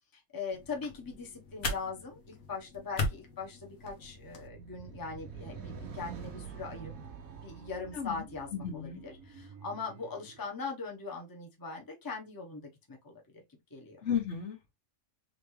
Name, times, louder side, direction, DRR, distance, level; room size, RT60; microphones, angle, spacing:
voice 1, 0.1-6.9 7.4-13.2 13.7-14.0, left 4 dB, 15° left, 0.9 m, -41 dB
sound 1, 0.5-4.5, left 2 dB, 80° left, 1.4 m, -39 dB
sound 2, 4.0-10.5, right 6 dB, 90° right, 1.4 m, -47 dB
voice 2, 7.9-8.2 8.5-9.0 14.0-14.7, left 8 dB, 60° left, 1.5 m, -34 dB
4.0 x 3.4 x 3.1 m
omnidirectional pair, 1.4 m